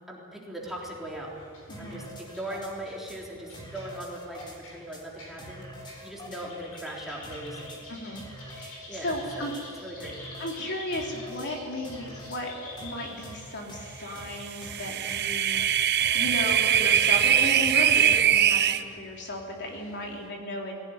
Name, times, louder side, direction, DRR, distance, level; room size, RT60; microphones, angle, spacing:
voice 1, 0.1-1.3 1.8-7.8 8.9-9.5 9.8-10.2 20.1-20.3, right 1 dB, ahead, -4 dB, 3.8 m, -39 dB
sound 1, 0.6-20.3, left 1 dB, 70° left, 7.9 m, -49 dB
voice 2, 1.7-2.1 7.9-8.2 8.5-9.5 10.4-20.8, left 1 dB, 50° left, 0 dB, 3.4 m, -35 dB
sound 2, 1.7-2.7 3.1-3.2 3.5-4.6 4.9-5.0 5.4-6.4 6.8-6.9 7.2-7.8 8.2-8.7 9.1-9.6 10.0-10.6 10.9-11.5 11.8-12.4 12.8-12.9 13.2-13.4 13.7-13.8 14.2-14.3 14.6-14.7 15.1-15.2 15.5-15.7 16.0-18.3, equal, 20° left, 3.8 m, -43 dB
sound 3, 14.5-18.8, right 9 dB, 50° right, 0.8 m, -22 dB
20.5 x 17.0 x 9.7 m, 2.3 s
head